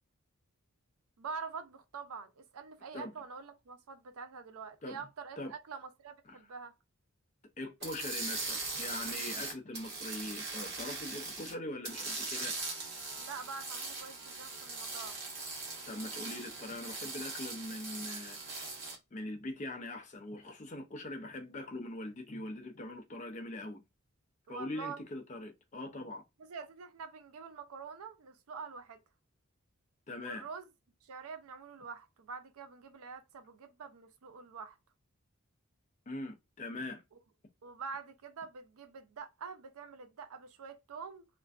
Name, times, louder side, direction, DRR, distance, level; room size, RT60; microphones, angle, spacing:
voice 1, 1.2-6.7 13.2-15.2 24.5-25.0 26.5-29.0 30.2-30.6 31.0-34.8 37.6-41.3, right 5 dB, 75° right, 0.5 m, -45 dB
voice 2, 7.6-12.6 15.9-18.8 19.1-23.8 24.5-26.2 30.1-30.5 36.1-37.0, left 1 dB, 35° left, 0.4 m, -42 dB
sound 1, 7.8-11.5 11.8-18.9, right 3 dB, 45° right, 1.1 m, -40 dB
2.4 x 2.2 x 2.3 m
head